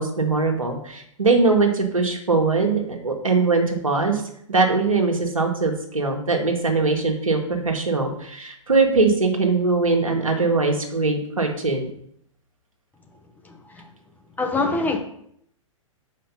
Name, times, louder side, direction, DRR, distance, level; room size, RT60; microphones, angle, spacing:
voice 1, 0.0-4.2 4.5-11.9, right 3 dB, 85° right, 2 dB, 1.6 m, -21 dB
voice 2, 13.4-13.9 14.4-15.0, left 3 dB, 10° left, 3 dB, 0.8 m, -24 dB
6.8 x 5.2 x 5.4 m, 0.71 s
figure-of-eight pair, 105°, 17 cm